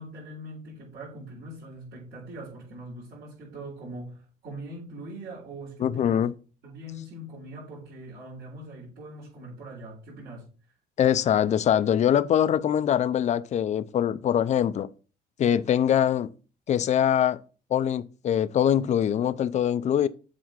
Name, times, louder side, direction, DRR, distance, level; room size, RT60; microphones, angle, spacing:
voice 1, 0.0-6.3 6.6-10.7, right 1 dB, 70° right, 4.0 m, -42 dB
voice 2, 5.8-6.3 11.0-14.9 15.4-16.3 16.7-17.4 17.7-20.1, left 9 dB, 45° left, 0.5 m, -23 dB
7.5 x 3.4 x 5.8 m
cardioid pair, 110°, 17 cm